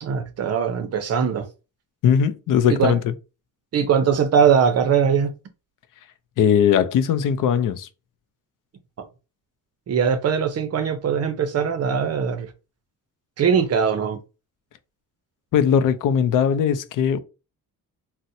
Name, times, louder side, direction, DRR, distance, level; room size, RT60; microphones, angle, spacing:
voice 1, 0.0-1.5 2.7-3.0 3.7-5.3 9.9-12.5 13.4-14.2, right 7 dB, 45° right, 0.5 m, -21 dB
voice 2, 2.0-3.1 6.4-7.9 15.5-17.2, left 8 dB, 65° left, 0.5 m, -19 dB
4.1 x 2.1 x 2.6 m
wide cardioid pair, 175°, 35 cm